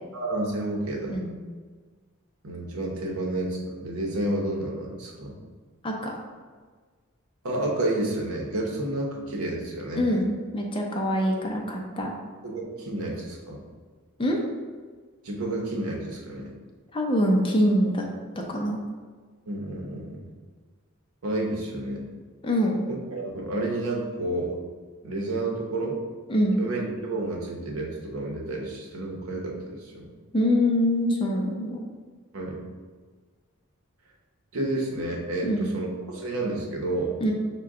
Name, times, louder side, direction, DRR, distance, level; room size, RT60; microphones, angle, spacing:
voice 1, 0.1-1.2 2.4-5.4 7.4-10.0 12.4-13.6 15.2-16.5 19.5-20.2 21.2-22.0 22.9-24.6 25.0-26.0 26.6-30.1 32.3-32.6 34.5-37.2, right 2 dB, 80° right, -1 dB, 0.9 m, -30 dB
voice 2, 5.8-6.2 9.9-12.1 14.2-14.4 16.9-18.0 18.4-18.8 22.4-22.8 26.3-26.6 30.3-31.9 35.4-35.7 37.2-37.3, equal, 25° left, 0 dB, 0.5 m, -24 dB
5.8 x 2.2 x 3.6 m, 1.5 s
head